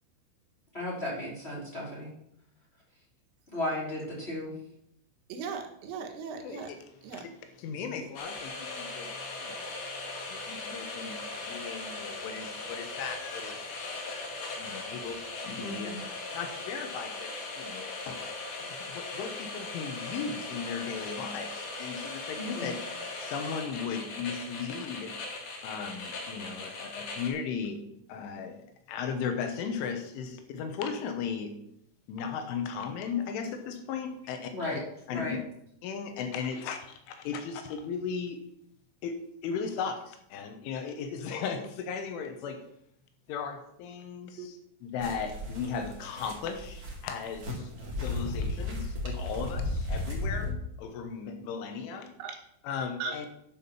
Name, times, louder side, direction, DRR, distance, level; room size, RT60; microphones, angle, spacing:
voice 1, 0.7-2.1 3.5-4.5 15.6-16.0 22.4-22.7 34.5-34.8 35.1-35.3, left 1 dB, 15° left, 2.3 m, -35 dB
voice 2, 5.3-6.7 7.0-7.2 44.4-44.5 52.2-52.4 53.0-53.3, right 5 dB, 75° right, 3.8 m, -37 dB
voice 3, 6.4-6.8 7.1-9.1 9.4-9.7 10.1-14.3 14.6-16.0 16.3-18.2 18.6-22.8 23.2-25.1 25.6-27.8 28.1-31.5 32.1-34.8 35.1-35.4 35.8-38.4 39.0-39.2 39.4-42.6 43.3-47.7 48.0-52.1 52.6-53.3, left 6 dB, 80° left, 3.4 m, -37 dB
sound 1, 8.2-27.3, left 3 dB, 50° left, 2.8 m, -39 dB
sound 2, 45.0-50.5, left 2 dB, 45° right, 1.1 m, -34 dB
10.5 x 6.1 x 7.1 m
omnidirectional pair, 5.8 m